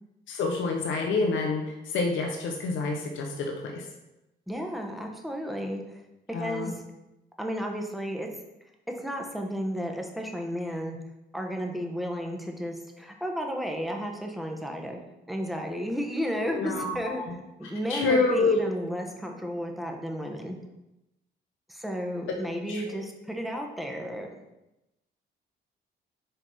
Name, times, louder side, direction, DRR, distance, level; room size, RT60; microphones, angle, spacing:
voice 1, 0.3-3.9 6.3-6.7 16.5-17.3 17.9-18.6 22.7-22.8, left 3 dB, 75° left, 1 dB, 0.9 m, -27 dB
voice 2, 4.5-6.0 6.4-6.8 7.4-8.3 9.0-11.0 11.3-15.0 15.3-20.6 21.7-24.3, equal, ahead, 1 dB, 1.1 m, -33 dB
5.6 x 3.5 x 5.6 m, 0.94 s
cardioid pair, 90°, 20 cm